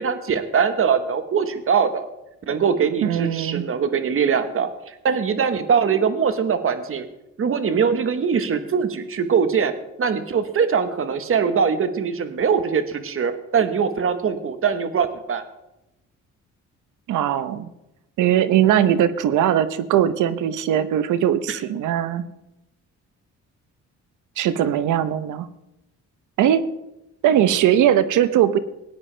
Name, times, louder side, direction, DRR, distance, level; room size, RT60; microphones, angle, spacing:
voice 1, 0.0-2.1 2.5-7.1 7.4-9.7 10.0-15.4 21.5-21.6, right 6 dB, 45° right, 10 dB, 1.2 m, -22 dB
voice 2, 3.0-3.7 17.1-17.7 18.2-22.3 24.4-25.5 26.4-26.7 27.2-28.6, right 10 dB, 80° right, 13 dB, 0.8 m, -20 dB
18.5 x 9.5 x 3.3 m, 0.92 s
cardioid pair, 90°, 30 cm